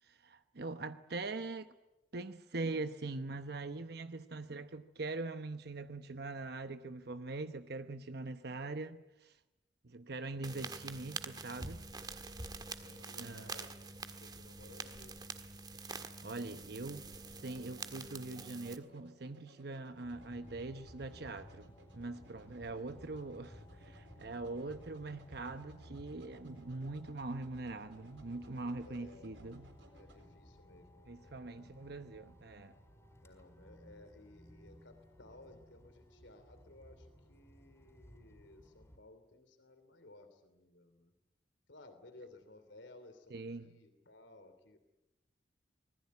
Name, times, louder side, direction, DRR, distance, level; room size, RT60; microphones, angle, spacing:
voice 1, 0.0-1.7 2.1-9.4 9.8-11.8 13.2-13.5 16.2-29.7 31.1-32.8 43.3-43.7, right 3 dB, 60° right, 0.9 m, -42 dB
sound 1, 10.4-18.8, right 3 dB, 20° right, 1.6 m, -46 dB
voice 2, 12.8-15.2 22.5-23.2 28.8-29.5 29.9-31.9 33.2-41.1 41.7-44.8, left 2 dB, 80° left, 3.1 m, -58 dB
sound 2, 15.0-30.3, right 1 dB, 80° right, 3.9 m, -63 dB
sound 3, 20.0-39.0, equal, 15° left, 4.5 m, -58 dB
25.5 x 20.5 x 9.5 m
head